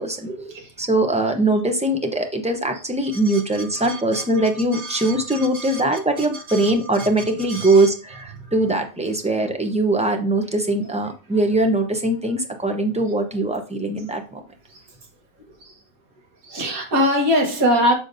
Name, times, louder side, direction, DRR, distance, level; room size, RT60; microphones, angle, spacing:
voice 1, 0.3-0.7 3.1-5.8 6.2-6.7 7.0-7.1 7.5-7.9 8.3-8.5 14.7-14.8 15.6-15.8 16.4-18.0, equal, 90° right, 1.9 m, -25 dB
voice 2, 0.8-14.4, right 2 dB, 5° right, 0.5 m, -21 dB
6.6 x 5.8 x 2.6 m
omnidirectional pair, 1.5 m